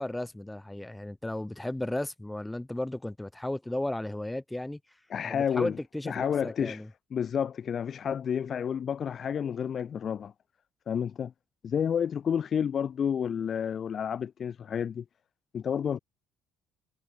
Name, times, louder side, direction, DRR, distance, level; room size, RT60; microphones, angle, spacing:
voice 1, 0.0-4.8 5.2-6.9, left 1 dB, 10° left, 2.5 m, -34 dB
voice 2, 5.1-5.7 6.1-6.8 7.1-10.3 10.9-11.3 11.6-15.0 15.5-16.0, left 8 dB, 45° left, 0.3 m, -30 dB
hypercardioid pair, 55°, 0 cm